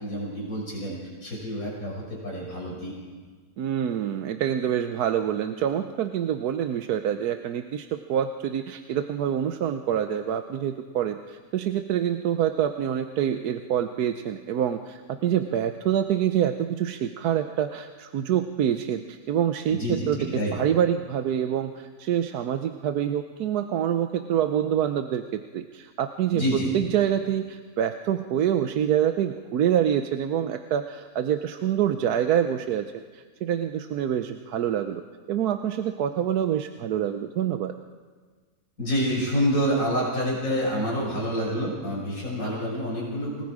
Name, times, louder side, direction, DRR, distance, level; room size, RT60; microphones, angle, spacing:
voice 1, 0.0-2.9 19.7-20.6 26.3-26.7 38.8-43.4, equal, 60° left, -4 dB, 6.6 m, -28 dB
voice 2, 3.6-32.9 33.1-35.0 35.3-37.7, right 10 dB, 75° right, 8 dB, 1.2 m, -26 dB
28.5 x 19.5 x 4.9 m, 1.5 s
omnidirectional pair, 1.7 m